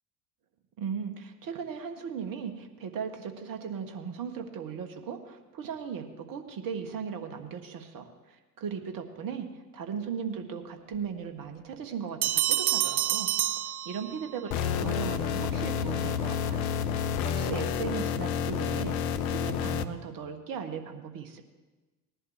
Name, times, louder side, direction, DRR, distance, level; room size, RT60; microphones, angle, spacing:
voice 1, 0.8-9.5 9.7-13.3 13.9-16.6 16.9-19.0 19.3-21.4, right 7 dB, 45° right, 6 dB, 1.8 m, -37 dB
Bell, 12.2-14.4, right 13 dB, 70° right, 0.6 m, -28 dB
sound 1, 14.5-19.9, left 7 dB, 65° left, 0.8 m, -29 dB
19.5 x 11.0 x 3.0 m, 1.2 s
figure-of-eight pair, 65°, 46 cm